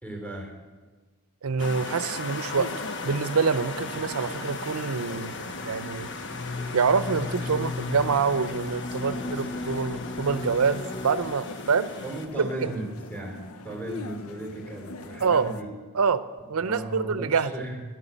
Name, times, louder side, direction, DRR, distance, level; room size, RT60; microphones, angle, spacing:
voice 1, 0.0-0.5 12.0-15.7 16.6-17.8, right 1 dB, 10° left, 0 dB, 3.7 m, -36 dB
voice 2, 1.4-2.7 3.0-6.1 6.7-11.9 12.4-12.7 15.2-15.5 15.9-16.2 16.5-17.5, right 5 dB, 80° right, 14 dB, 0.6 m, -26 dB
sound 1, 1.6-12.3, left 3 dB, 60° left, 1.1 m, -37 dB
sound 2, 2.6-15.6, left 3 dB, 75° left, 0.6 m, -43 dB
sound 3, 3.4-11.4, left 3 dB, 25° left, 0.3 m, -37 dB
11.5 x 8.2 x 9.1 m, 1.4 s
head